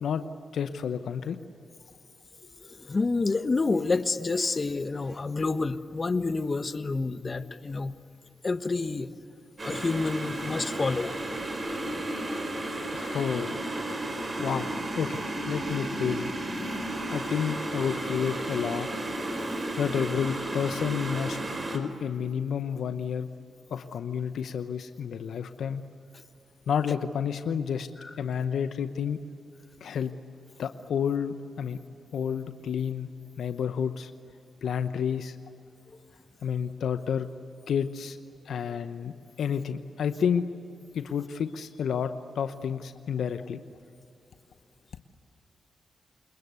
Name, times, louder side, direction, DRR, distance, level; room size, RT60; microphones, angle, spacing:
voice 1, 0.5-1.4 12.9-13.5 14.4-16.3 17.1-18.9 19.8-21.4 21.7-23.3 23.7-25.8 26.7-27.9 28.2-29.2 29.8-30.1 30.6-31.8 32.1-33.1 33.4-34.1 34.6-35.4 36.4-37.3 37.7-38.2 38.5-39.1 39.4-40.5 40.9-43.6, left 7 dB, 75° left, 10 dB, 0.9 m, -30 dB
voice 2, 2.8-7.9 8.4-9.1 9.6-11.1 28.0-28.1, left 3 dB, 40° left, 11 dB, 1.3 m, -28 dB
sound 1, 9.6-21.8, right 1 dB, 40° right, 4.7 m, -33 dB
28.0 x 21.5 x 8.2 m, 2.5 s
supercardioid pair, 45°, 0 cm